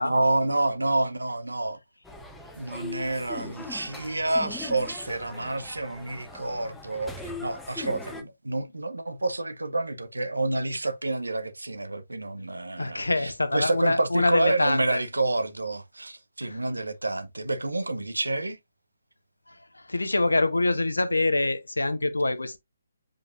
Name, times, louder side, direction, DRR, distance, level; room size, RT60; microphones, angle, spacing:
voice 1, 0.0-1.8 2.6-7.1 7.4-18.6, right 2 dB, 85° right, 1.0 m, -28 dB
sound 1, 2.0-8.2, left 2 dB, 5° left, 1.0 m, -41 dB
voice 2, 12.8-15.0 16.4-16.6 19.5-19.6 19.9-22.6, left 2 dB, 85° left, 1.0 m, -25 dB
7.4 x 5.1 x 2.6 m
figure-of-eight pair, 140°, 0 cm